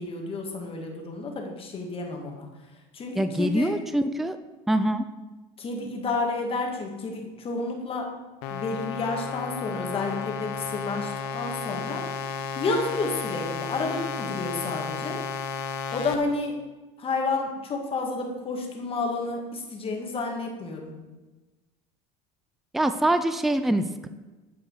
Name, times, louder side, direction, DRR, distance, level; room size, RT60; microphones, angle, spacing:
voice 1, 0.0-2.5 2.9-3.7 5.6-8.1 8.5-12.0 12.6-15.2 15.9-16.6 17.0-20.9, left 3 dB, 35° left, 1 dB, 1.9 m, -30 dB
voice 2, 3.2-4.4 4.7-5.0 22.7-24.1, right 1 dB, ahead, 10 dB, 0.4 m, -24 dB
sound 1, 8.4-16.2, left 6 dB, 75° left, 0.9 m, -33 dB
8.8 x 4.8 x 4.7 m, 1.2 s
supercardioid pair, 90°, 16 cm